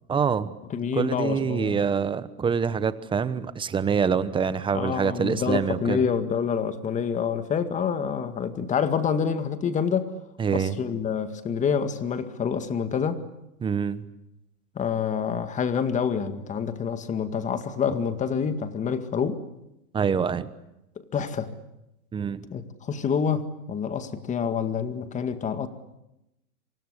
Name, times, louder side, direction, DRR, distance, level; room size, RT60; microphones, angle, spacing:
voice 1, 0.1-0.5 0.9-6.0 10.4-10.8 13.6-14.0 19.9-20.5 22.1-22.4, right 6 dB, 10° right, 15 dB, 1.0 m, -25 dB
voice 2, 0.7-1.8 4.7-10.1 10.5-13.2 14.8-19.4 21.1-21.5 22.5-25.7, left 7 dB, 15° left, 10 dB, 2.0 m, -27 dB
27.5 x 25.5 x 8.3 m, 0.89 s
hypercardioid pair, 145°, 43 cm